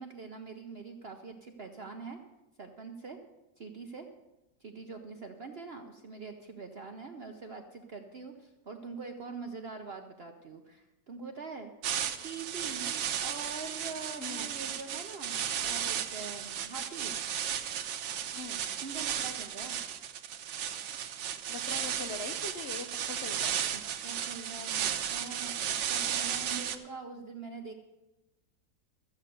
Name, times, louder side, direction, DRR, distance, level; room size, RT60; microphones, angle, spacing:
voice 1, 0.0-2.2 2.6-3.2 3.6-4.1 4.6-11.7 12.1-17.2 18.2-18.4 18.8-19.8 23.7-27.7, right 4 dB, 55° right, 4 dB, 0.6 m, -44 dB
sound 1, 11.8-26.8, right 9 dB, 80° right, 1.5 m, -34 dB
voice 2, 14.2-14.5 18.3-18.6 21.5-23.6, left 3 dB, 70° left, 6 dB, 0.5 m, -42 dB
13.5 x 8.1 x 6.7 m, 1.0 s
omnidirectional pair, 2.0 m